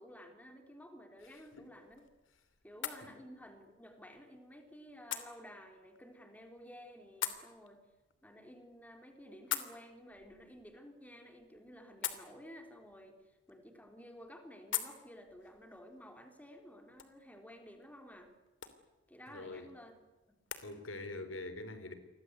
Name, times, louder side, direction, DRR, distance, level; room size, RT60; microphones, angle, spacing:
voice 1, 0.0-2.0 2.6-7.8 8.2-18.3 19.1-20.0 20.3-20.4 20.6-20.9 21.2-21.4, equal, 10° left, 3.6 m, -54 dB
sound 1, 1.2-20.7, left 11 dB, 70° left, 3.0 m, -47 dB
voice 2, 19.3-19.7 20.6-21.9, left 2 dB, 90° left, 4.2 m, -44 dB
29.5 x 23.5 x 8.1 m
head